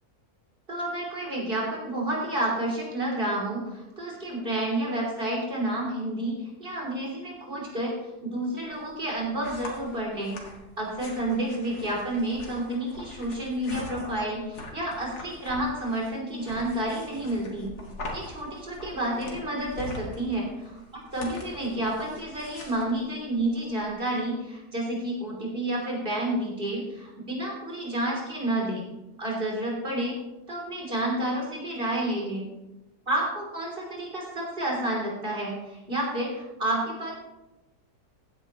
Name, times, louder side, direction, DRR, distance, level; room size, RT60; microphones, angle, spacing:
voice 1, 0.7-7.9 8.2-10.3 10.8-17.7 18.1-28.8 29.2-30.1 30.5-32.4 33.1-37.1, right 1 dB, 35° right, -2 dB, 3.6 m, -30 dB
sound 1, 8.6-23.9, left 1 dB, 75° left, 2.4 m, -43 dB
15.5 x 9.7 x 3.1 m, 0.99 s
omnidirectional pair, 1.7 m